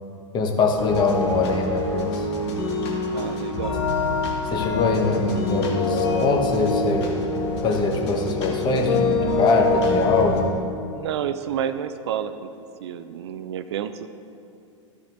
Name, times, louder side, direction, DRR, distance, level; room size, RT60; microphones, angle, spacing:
voice 1, 0.3-2.3 4.4-7.1 7.6-10.5, left 3 dB, 30° left, 2 dB, 1.2 m, -23 dB
sound 1, 0.8-10.4, left 3 dB, 55° left, 1.7 m, -25 dB
voice 2, 3.1-3.8 10.9-12.5 12.8-14.1, right 9 dB, 55° right, 11 dB, 0.4 m, -29 dB
14.0 x 7.0 x 2.7 m, 2.5 s
figure-of-eight pair, 95°, 16 cm